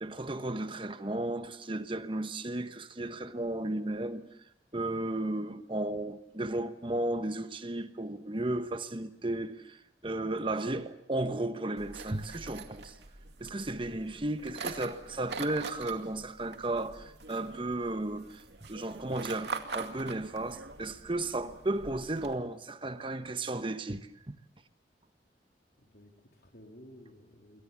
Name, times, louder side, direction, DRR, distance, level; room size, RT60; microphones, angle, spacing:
voice 1, 0.0-4.3 4.7-13.0 13.4-24.4, right 2 dB, 30° right, 1.2 m, -34 dB
sound 1, 11.8-22.3, right 4 dB, 80° right, 2.4 m, -44 dB
voice 2, 25.8-27.6, equal, 60° left, 3.8 m, -54 dB
28.5 x 23.0 x 7.3 m
head